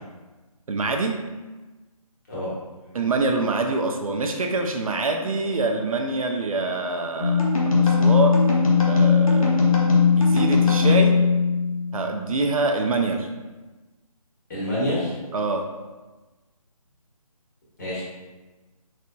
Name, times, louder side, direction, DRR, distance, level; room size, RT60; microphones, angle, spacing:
voice 1, 0.7-1.2 2.9-7.5 7.8-8.4 8.9-9.7 10.1-11.2 11.9-13.3 15.3-15.7, right 3 dB, 65° right, 3 dB, 0.4 m, -25 dB
maadal-solution-jhyaaure, 7.2-12.0, left 5 dB, 65° left, 0.9 m, -19 dB
voice 2, 14.5-15.2 17.8-18.0, left 1 dB, 30° left, -8 dB, 1.1 m, -27 dB
4.0 x 2.8 x 2.2 m, 1.2 s
figure-of-eight pair, 165°, 19 cm